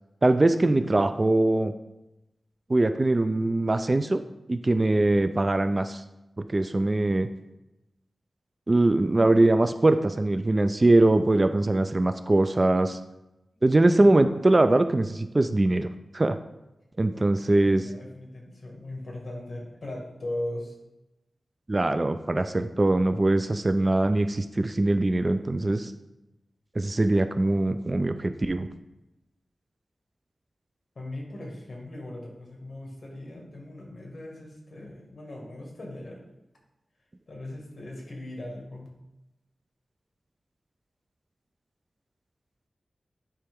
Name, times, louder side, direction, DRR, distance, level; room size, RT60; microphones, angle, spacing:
voice 1, 0.2-1.7 2.7-4.2 4.5-6.0 6.4-7.3 8.7-13.0 13.6-15.9 16.1-16.4 17.0-17.8 21.7-25.9 26.8-28.7, right 2 dB, 30° right, 10 dB, 0.3 m, -22 dB
voice 2, 4.7-5.5 13.5-13.6 17.1-20.7 31.0-36.2 37.3-38.9, left 1 dB, 55° left, -1 dB, 1.7 m, -39 dB
9.8 x 3.3 x 3.6 m, 0.95 s
wide cardioid pair, 90°, 0 cm